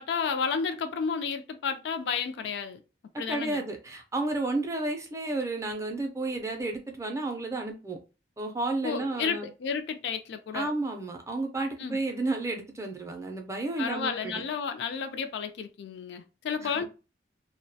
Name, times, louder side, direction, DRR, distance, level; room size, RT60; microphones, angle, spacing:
voice 1, 0.0-2.8 3.2-3.7 8.8-10.7 11.8-12.0 13.8-16.8, left 6 dB, 75° left, 0.3 m, -32 dB
voice 2, 3.3-8.0 8.4-9.5 10.5-14.4 16.6-16.8, right 2 dB, 15° right, 0.4 m, -32 dB
2.2 x 2.1 x 2.6 m
head